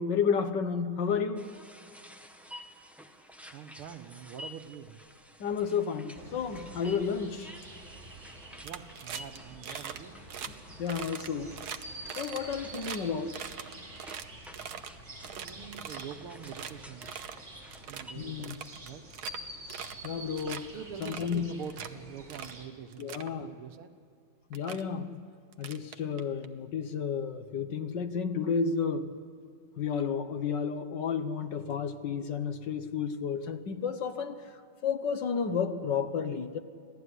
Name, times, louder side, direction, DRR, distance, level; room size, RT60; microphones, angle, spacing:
voice 1, 0.0-1.5 5.4-7.5 10.5-10.6 10.8-11.5 12.2-13.4 18.1-18.6 20.0-20.7 21.0-21.5 23.0-23.5 24.5-25.2 25.6-29.1 29.8-34.4 34.8-36.6, left 6 dB, 60° left, 9 dB, 1.6 m, -31 dB
sound 1, 1.4-18.1, equal, ahead, 0.8 m, -52 dB
voice 2, 3.5-5.0 8.6-10.2 15.2-17.1 17.9-18.5 18.8-19.0 20.7-23.9, right 8 dB, 90° right, 8 dB, 2.1 m, -45 dB
sound 2, 6.1-22.7, right 1 dB, 30° right, 4.3 m, -48 dB
sound 3, 8.6-9.4 9.6-10.0 10.3-10.5 10.9-13.0 13.3-14.9 15.2-16.1 16.4-16.7 17.0-17.4 17.7-18.0 18.4-19.4 19.7-20.1 20.4-20.6 21.0-21.9 22.3-22.6 22.9-23.3 24.1-24.2 24.5-24.8 25.5-26.4, right 8 dB, 55° right, 1.4 m, -41 dB
26.5 x 17.0 x 9.8 m, 2.3 s
omnidirectional pair, 2.3 m